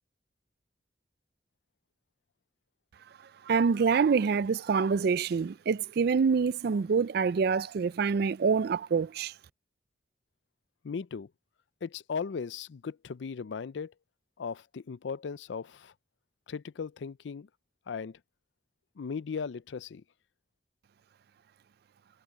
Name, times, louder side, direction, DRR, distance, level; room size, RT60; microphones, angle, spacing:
voice 1, 3.5-9.3, right 5 dB, 60° right, 0.4 m, -26 dB
voice 2, 10.8-11.3 11.8-13.9 14.4-15.9 16.5-17.5 17.9-18.2 19.0-20.0, left 5 dB, 85° left, 0.5 m, -37 dB
head